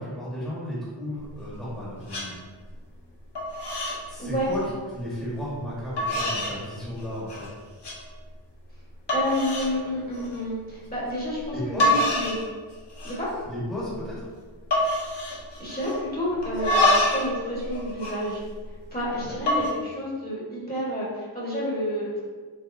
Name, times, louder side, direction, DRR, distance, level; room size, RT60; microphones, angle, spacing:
voice 1, 0.0-2.4 4.1-4.6 4.9-7.5 11.5-12.0 13.5-14.3 19.2-19.3, equal, ahead, -9 dB, 1.3 m, -34 dB
sound 1, 1.2-1.8 2.1-2.3 2.7-3.1 3.3-4.0 4.3-4.7 5.4-5.5 6.0-6.6 7.0-7.5 7.8-8.0 8.5-8.6 9.1-9.7 10.1-10.4 11.5-11.6 11.8-12.4 12.7-13.3 13.6-13.7 13.9-14.3 14.7-16.1 16.4-17.3 17.6-18.9 19.3-19.7, left 1 dB, 60° left, 1.0 m, -26 dB
voice 2, 4.2-4.5 9.1-12.4 13.0-13.3 15.6-18.4 18.9-22.2, equal, 20° left, -8 dB, 1.4 m, -30 dB
4.5 x 3.0 x 2.7 m, 1.5 s
wide cardioid pair, 70°, 46 cm